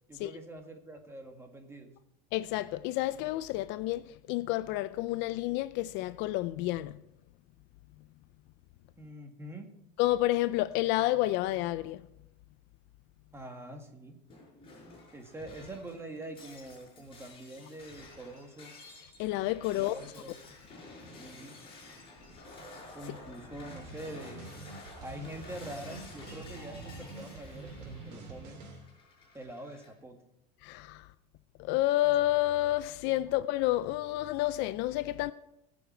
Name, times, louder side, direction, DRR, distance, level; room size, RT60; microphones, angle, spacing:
voice 1, 0.1-1.9 9.0-9.7 13.3-14.2 15.1-18.7 19.8-20.5 21.2-21.6 22.9-24.6 25.0-28.6 29.3-30.2, right 1 dB, 10° right, 1.9 m, -45 dB
voice 2, 2.3-7.0 10.0-12.0 19.2-19.9 30.6-31.1 31.6-35.3, left 16 dB, 60° left, 0.5 m, -30 dB
Shatter, 14.3-29.9, left 2 dB, 25° left, 5.9 m, -51 dB
sound 1, 23.7-28.9, right 3 dB, 80° right, 3.6 m, -46 dB
21.0 x 7.2 x 4.5 m
supercardioid pair, 130°, 21 cm